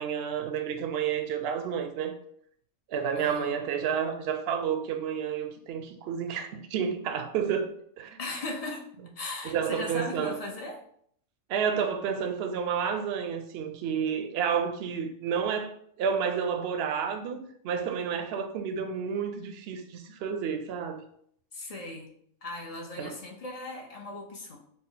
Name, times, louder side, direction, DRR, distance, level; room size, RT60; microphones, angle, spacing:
voice 1, 0.0-2.1 2.9-7.7 8.0-8.2 9.4-10.4 11.5-21.0 23.0-23.2, right 7 dB, 65° right, 0.7 m, -30 dB
voice 2, 3.1-3.6 8.2-8.8 9.1-10.8 21.5-22.1 22.4-24.6, left 2 dB, 40° left, 0.5 m, -38 dB
4.0 x 2.0 x 3.8 m
omnidirectional pair, 1.3 m